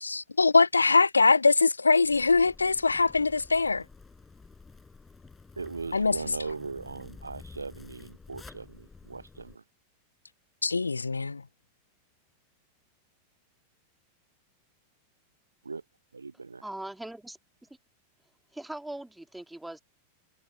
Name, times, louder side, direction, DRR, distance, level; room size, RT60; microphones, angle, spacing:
voice 1, 0.0-3.8 5.9-6.2 10.6-11.4, left 4 dB, 80° left, 0.4 m, -22 dB
Zipper (clothing), 2.0-9.5, left 4 dB, 10° left, 3.9 m, -51 dB
voice 2, 5.6-9.6 15.6-15.8 16.1-16.6, right 4 dB, 80° right, 0.5 m, -39 dB
voice 3, 16.6-17.4 18.5-19.8, right 1 dB, 5° right, 2.5 m, -40 dB
figure-of-eight pair, 90°, 0 cm